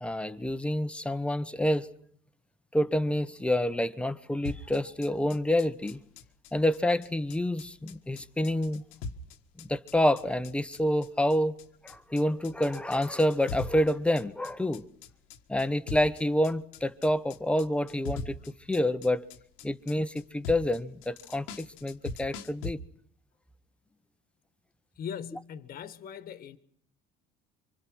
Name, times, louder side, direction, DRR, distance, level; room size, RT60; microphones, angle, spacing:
voice 1, 0.0-1.9 2.7-6.0 6.5-8.8 9.6-11.5 11.8-14.8 15.5-18.4 18.7-19.3 19.6-22.8, left 1 dB, 5° left, 1.2 m, -28 dB
sound 1, 4.4-22.7, left 3 dB, 90° left, 1.7 m, -42 dB
voice 2, 24.9-26.6, left 8 dB, 50° left, 1.6 m, -40 dB
25.5 x 25.5 x 6.3 m
cardioid pair, 125°, 20 cm